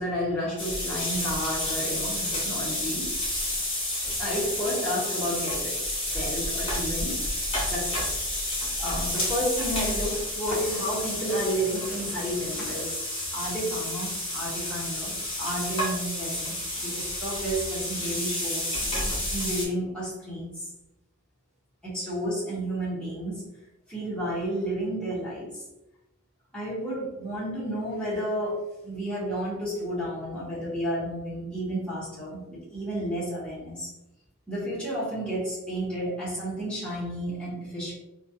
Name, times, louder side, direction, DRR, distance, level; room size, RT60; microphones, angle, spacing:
voice 1, 0.0-3.1 4.2-7.2 7.6-8.2 8.8-13.0 13.3-18.8 19.3-20.7 21.8-23.4 23.9-25.6 26.5-33.9 34.5-38.0, equal, 5° left, -9 dB, 1.1 m, -31 dB
sound 1, 0.6-19.6, left 1 dB, 25° left, 1.3 m, -30 dB
3.1 x 2.4 x 2.7 m, 0.92 s
head